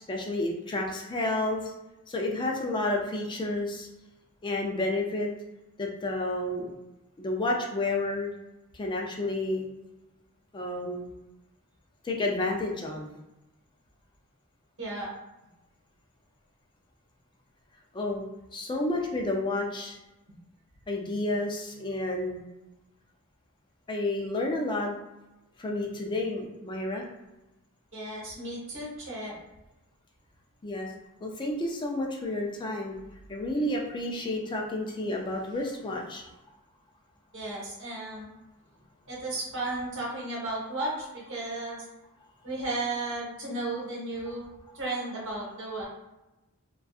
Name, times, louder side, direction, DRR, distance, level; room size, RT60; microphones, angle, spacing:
voice 1, 0.1-1.7 2.1-3.9 4.4-5.3 5.8-6.7 7.2-8.3 8.7-9.6 10.5-11.1 12.0-13.1 17.9-18.2 18.5-20.0 20.9-22.4 23.9-25.0 25.6-27.1 30.6-30.9 31.2-33.0 33.3-36.2, left 2 dB, 20° left, 0 dB, 0.4 m, -30 dB
voice 2, 14.8-15.1 27.9-29.3 37.3-38.3 39.1-41.8 42.4-44.5 44.7-45.8, right 2 dB, 60° right, -4 dB, 1.1 m, -34 dB
2.6 x 2.3 x 2.3 m, 0.98 s
head